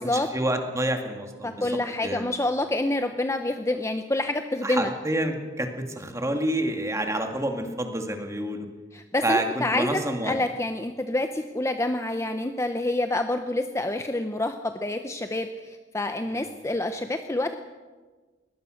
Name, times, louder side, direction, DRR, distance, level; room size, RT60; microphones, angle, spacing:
voice 1, 0.0-2.2 4.6-8.7 9.2-10.4 16.3-16.5, right 1 dB, 15° right, 5 dB, 2.0 m, -28 dB
voice 2, 1.4-4.9 8.9-17.5, left 2 dB, 15° left, 7 dB, 0.7 m, -27 dB
22.0 x 18.5 x 6.4 m, 1.3 s
head